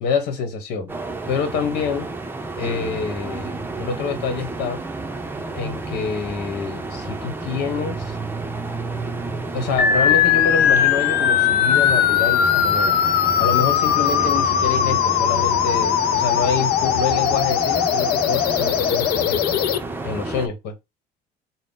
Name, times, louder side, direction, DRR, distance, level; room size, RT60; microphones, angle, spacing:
voice 1, 0.0-0.9 1.3-2.1 2.6-4.8 5.5-8.2 9.5-13.0 13.4-19.6 20.0-20.7, left 5 dB, 85° left, 1.1 m, -26 dB
sound 1, 0.9-20.5, right 3 dB, 10° right, 0.5 m, -31 dB
sound 2, 9.8-19.8, left 9 dB, 65° left, 0.4 m, -19 dB
3.8 x 2.1 x 3.7 m
cardioid pair, 110°, 17 cm